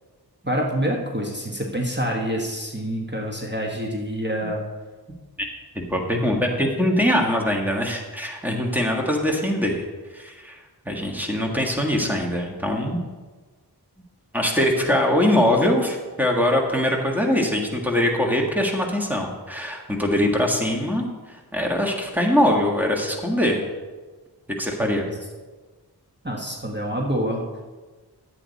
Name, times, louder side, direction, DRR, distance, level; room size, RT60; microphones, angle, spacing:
voice 1, 0.5-4.6 24.8-25.1 26.2-27.6, equal, 25° right, -1 dB, 1.4 m, -27 dB
voice 2, 5.7-9.8 10.1-10.6 10.8-13.0 14.3-23.6 24.6-25.0, left 1 dB, 5° right, 0 dB, 1.6 m, -22 dB
11.0 x 8.5 x 4.1 m, 1.3 s
wide cardioid pair, 40°, 41 cm